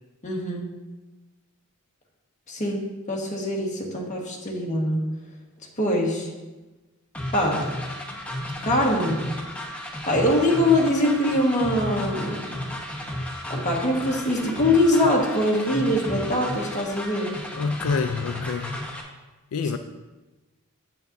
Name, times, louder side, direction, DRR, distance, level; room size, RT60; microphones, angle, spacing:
voice 1, 0.2-0.6 2.5-2.8 3.1-5.0 5.8-6.3 7.3-7.6 8.6-9.3 10.1-12.5 13.5-17.3, left 1 dB, 35° left, -2 dB, 1.4 m, -23 dB
sound 1, 7.1-19.0, left 1 dB, 5° left, 0.8 m, -33 dB
voice 2, 17.6-18.8 19.5-19.8, left 5 dB, 80° left, 8 dB, 0.4 m, -27 dB
9.2 x 8.1 x 2.6 m, 1.2 s
head